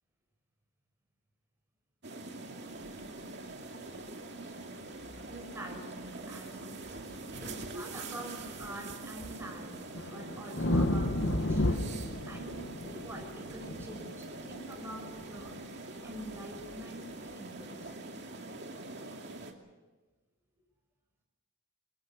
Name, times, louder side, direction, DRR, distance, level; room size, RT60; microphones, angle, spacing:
sound 1, 2.0-19.5, right 2 dB, 50° right, 2.6 m, -44 dB
sound 2, 5.0-5.6 6.0-6.1 8.4-8.7 9.2-15.8 16.1-16.8 17.7-17.9, left 1 dB, 55° left, 1.4 m, -34 dB
voice 1, 5.3-6.8 7.4-9.8 10.1-12.5 13.0-15.6 16.0-18.0, right 1 dB, 10° right, 1 dB, 5.8 m, -46 dB
24.0 x 23.0 x 7.1 m, 1.2 s
head